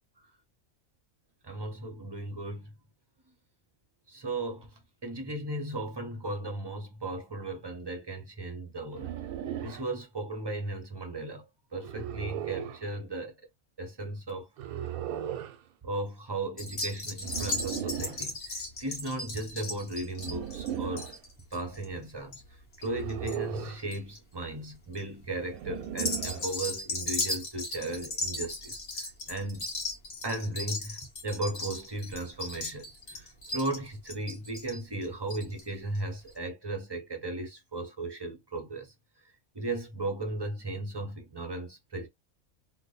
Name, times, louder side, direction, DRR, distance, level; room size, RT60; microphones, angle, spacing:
voice 1, 1.4-2.7 4.1-4.7 5.0-9.1 9.6-11.5 11.7-13.3 13.8-14.5 15.8-21.1 21.5-22.4 22.8-29.7 30.2-38.9 39.5-42.1, right 2 dB, 25° right, 0.5 m, -36 dB
sound 1, 8.9-9.9 11.8-12.8 14.6-15.6 17.2-18.2 20.2-21.2 22.8-23.9 25.5-26.5, right 10 dB, 90° right, 1.0 m, -36 dB
sound 2, 16.6-23.4 23.6-24.2 24.7-25.0 25.8-35.6 35.9-36.0 36.3-36.4, left 2 dB, 50° left, 1.6 m, -36 dB
3.2 x 2.1 x 3.9 m
omnidirectional pair, 1.5 m